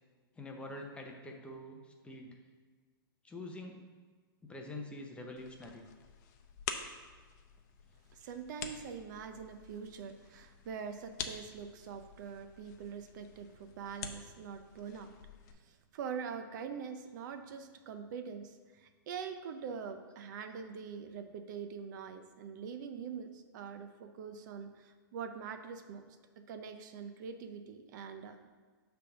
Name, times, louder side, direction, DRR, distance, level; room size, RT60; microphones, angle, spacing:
voice 1, 0.4-2.3 3.2-3.7 4.4-5.9, left 1 dB, 10° left, 2 dB, 0.7 m, -45 dB
sound 1, 5.4-15.5, left 7 dB, 50° left, 0.7 m, -47 dB
voice 2, 8.1-15.1 15.6-26.2 26.5-28.6, right 6 dB, 55° right, 8 dB, 0.6 m, -44 dB
6.6 x 3.4 x 5.9 m, 1.5 s
hypercardioid pair, 135°, 12 cm